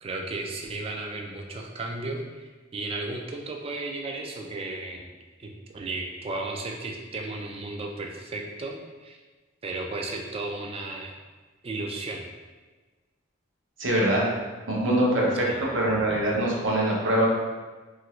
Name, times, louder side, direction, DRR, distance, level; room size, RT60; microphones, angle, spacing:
voice 1, 0.0-5.1 5.4-9.2 9.6-11.1 11.6-12.2 15.4-15.6, right 2 dB, 30° right, 2 dB, 0.3 m, -34 dB
voice 2, 13.8-14.3 14.7-17.3, right 1 dB, 70° right, -3 dB, 0.7 m, -23 dB
2.8 x 2.5 x 3.0 m, 1.3 s
head